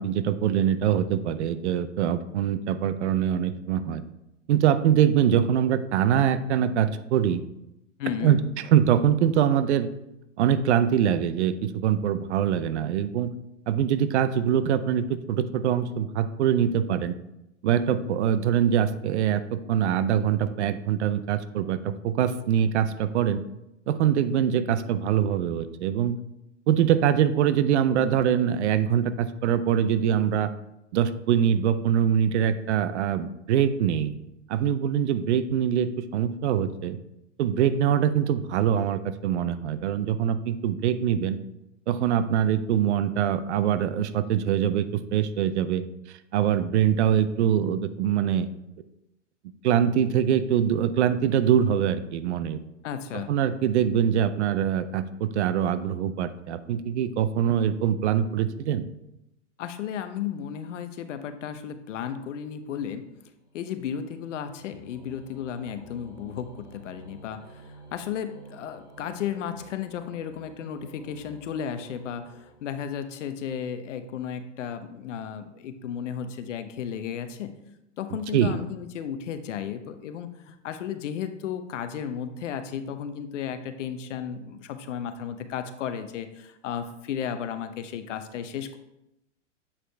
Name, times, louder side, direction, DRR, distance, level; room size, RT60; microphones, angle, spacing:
voice 1, 0.0-4.0 4.5-7.4 8.2-8.4 8.7-9.9 10.4-13.3 13.7-17.1 17.6-23.4 23.9-26.2 26.7-30.5 30.9-34.1 34.5-37.0 37.4-41.4 41.9-45.8 46.3-48.5 49.6-52.6 53.3-58.8 78.3-78.6, right 9 dB, 65° right, 12 dB, 0.7 m, -23 dB
voice 2, 8.0-8.4 52.8-53.3 59.6-63.1 63.5-77.5 78.0-88.8, left 8 dB, 70° left, 9 dB, 0.8 m, -34 dB
sound 1, 62.3-73.2, right 1 dB, 10° right, 1.9 m, -51 dB
8.3 x 5.0 x 3.3 m, 0.87 s
hypercardioid pair, 135°, 37 cm